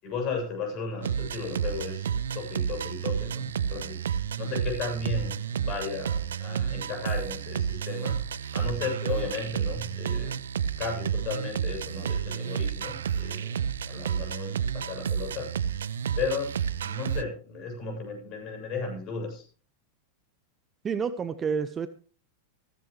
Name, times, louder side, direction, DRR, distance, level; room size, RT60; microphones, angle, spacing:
voice 1, 0.0-4.1 4.4-8.2 8.5-10.4 10.8-15.5 16.2-19.4, left 4 dB, 35° left, 3 dB, 7.5 m, -35 dB
sound 1, 1.0-17.2, right 8 dB, 65° right, 0.6 m, -31 dB
voice 2, 20.8-21.9, right 6 dB, 20° right, 13 dB, 0.8 m, -29 dB
16.0 x 14.5 x 3.3 m, 0.40 s
figure-of-eight pair, 90°, 0 cm